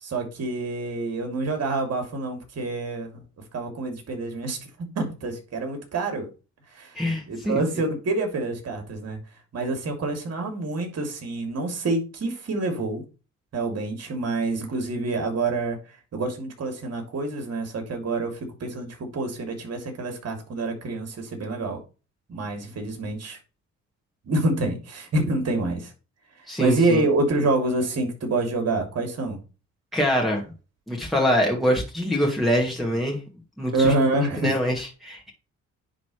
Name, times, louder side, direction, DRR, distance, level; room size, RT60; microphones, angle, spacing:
voice 1, 0.0-3.2 3.5-4.7 4.9-6.3 6.7-6.9 7.3-9.2 9.5-13.0 13.5-15.8 16.1-21.8 22.3-23.4 24.2-25.9 26.6-29.4 33.7-34.5, right 2 dB, 55° right, 3.0 m, -27 dB
voice 2, 7.0-7.6 26.5-27.0 29.9-30.5 30.9-33.2 33.6-33.9 34.4-35.3, equal, ahead, 2.3 m, -24 dB
9.9 x 4.1 x 3.3 m
cardioid pair, 90°, 30 cm